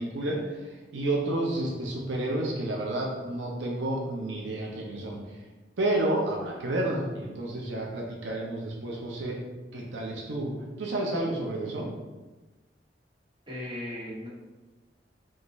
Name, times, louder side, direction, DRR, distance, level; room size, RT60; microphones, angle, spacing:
voice 1, 0.0-5.2 5.8-9.4 9.7-10.5 10.8-11.9, right 1 dB, 90° right, -2 dB, 0.8 m, -30 dB
voice 2, 13.5-14.3, left 1 dB, 25° right, -7 dB, 1.4 m, -37 dB
5.6 x 2.6 x 3.1 m, 1.2 s
head